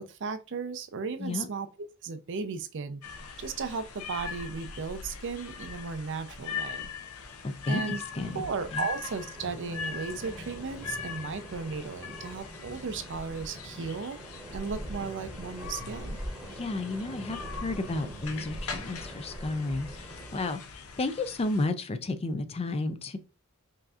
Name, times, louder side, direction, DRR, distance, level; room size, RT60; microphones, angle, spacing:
voice 1, 0.0-1.7 2.0-3.0 3.4-6.9 7.7-8.0 8.3-14.2 14.5-16.2, right 5 dB, 60° right, 0.5 m, -35 dB
sound 1, 3.0-21.7, left 6 dB, 80° left, 0.6 m, -41 dB
voice 2, 7.4-8.9 16.6-20.6 21.0-23.2, left 2 dB, 30° left, 0.4 m, -32 dB
sound 2, 8.2-20.5, right 1 dB, 5° right, 1.0 m, -43 dB
5.5 x 2.6 x 2.4 m
head